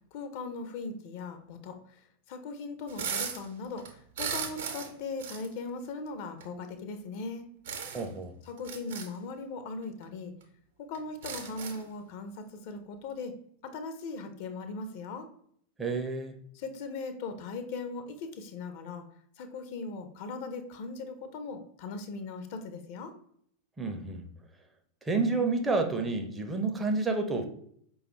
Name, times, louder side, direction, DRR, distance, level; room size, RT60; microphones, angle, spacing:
voice 1, 0.1-7.5 8.5-10.3 10.8-13.4 13.6-15.3 16.5-19.0 19.4-23.1, left 3 dB, 50° left, 8 dB, 0.4 m, -39 dB
sound 1, 2.9-3.5 3.8-4.9 5.2-5.5 6.4-6.5 7.7-8.1 8.6-9.1 10.0-10.1 10.4-10.5 10.9-11.9, right 7 dB, 60° right, 0.7 m, -36 dB
voice 2, 7.9-8.3 15.8-16.4 23.8-24.2 25.0-27.4, right 3 dB, 15° right, 5 dB, 0.5 m, -29 dB
4.8 x 2.3 x 2.9 m, 0.66 s
figure-of-eight pair, 90°, 0 cm